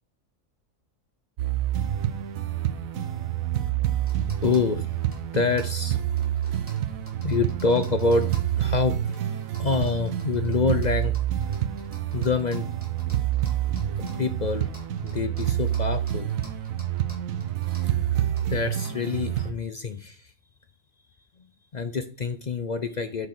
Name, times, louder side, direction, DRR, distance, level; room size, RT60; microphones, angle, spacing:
sound 1, 1.4-19.5, right 12 dB, 80° right, 1.1 m, -28 dB
sound 2, 3.4-19.4, equal, 10° right, 2.5 m, -53 dB
voice 1, 4.4-4.9 5.3-6.0 7.2-11.1 12.1-12.7 13.8-14.7 15.0-16.3 18.5-20.3 21.7-23.3, left 4 dB, 50° left, 9 dB, 0.5 m, -26 dB
6.5 x 6.0 x 5.0 m, 0.39 s
omnidirectional pair, 1.4 m